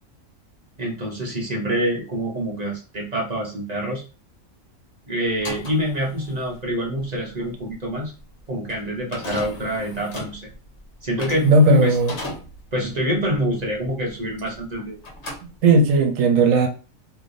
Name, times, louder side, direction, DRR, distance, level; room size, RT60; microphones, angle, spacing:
voice 1, 0.8-4.0 5.1-8.1 8.5-10.5 11.0-11.5 11.8-11.9 12.7-15.0, equal, 35° right, 0.8 m, -26 dB
sound 1, 5.3-14.7 15.0-16.0, left 1 dB, 60° left, 1.1 m, -38 dB
voice 2, 11.4-12.1 15.6-16.7, right 2 dB, 75° right, 1.1 m, -15 dB
3.3 x 2.7 x 2.6 m
omnidirectional pair, 1.4 m